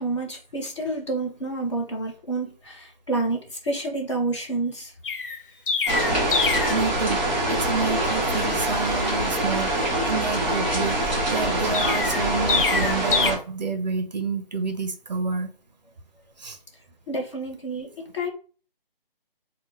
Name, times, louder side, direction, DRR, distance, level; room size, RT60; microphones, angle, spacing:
voice 1, 0.0-4.9 17.1-18.3, right 2 dB, 30° left, 0.8 m, -29 dB
Chirp tweet, 5.0-6.8 11.7-13.3, left 5 dB, 65° left, 0.6 m, -25 dB
sound 1, 5.9-13.4, right 1 dB, 10° right, 1.3 m, -24 dB
voice 2, 6.7-11.0 11.3-15.5 16.4-16.6, right 5 dB, 45° right, 0.5 m, -29 dB
3.6 x 2.2 x 4.0 m
figure-of-eight pair, 165°, 29 cm